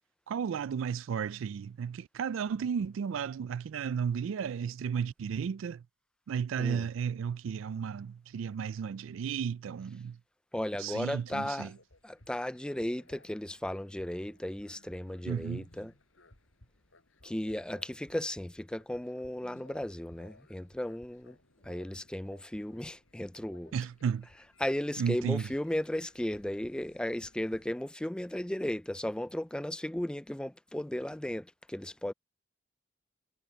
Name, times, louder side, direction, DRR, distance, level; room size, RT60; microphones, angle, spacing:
voice 1, 0.3-5.8 6.3-10.2 10.8-11.8 15.3-15.7 23.7-24.3 25.0-25.5, right 7 dB, 85° right, 0.3 m, -33 dB
voice 2, 10.5-11.7 12.0-15.9 17.2-21.4 21.6-23.7 24.6-32.1, left 1 dB, 5° left, 0.3 m, -35 dB
sound 1, 11.3-27.7, left 1 dB, 90° left, 4.9 m, -61 dB
head